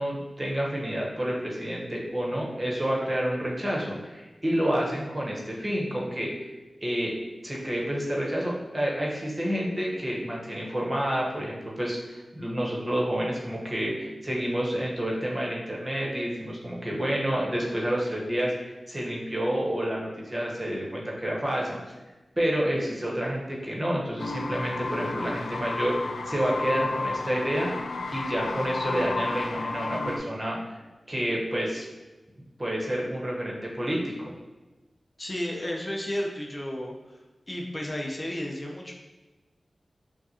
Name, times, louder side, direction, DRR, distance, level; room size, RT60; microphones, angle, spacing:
voice 1, 0.0-6.5 6.8-7.1 7.4-21.8 22.4-27.7 28.1-30.8 31.1-31.8 32.6-34.3, equal, 30° right, -3 dB, 1.2 m, -29 dB
sound 1, 24.2-30.2, left 3 dB, 90° left, 0.3 m, -32 dB
voice 2, 35.2-36.9 37.5-38.9, left 1 dB, 35° left, -1 dB, 0.7 m, -32 dB
5.7 x 2.4 x 2.9 m, 1.1 s
cardioid pair, 50°, 0 cm